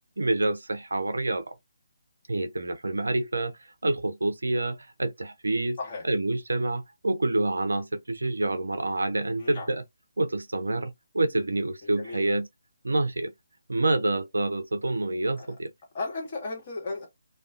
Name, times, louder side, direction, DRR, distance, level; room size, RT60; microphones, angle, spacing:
voice 1, 0.2-1.5 2.3-5.8 6.1-9.8 10.2-12.5 12.8-13.3 13.7-15.7, right 2 dB, 75° right, 0.4 m, -27 dB
voice 2, 5.8-6.1 9.4-9.7 11.8-12.3 15.4-15.6 15.9-17.1, left 3 dB, 40° left, 1.2 m, -35 dB
2.3 x 2.2 x 2.4 m
figure-of-eight pair, 145°, 0 cm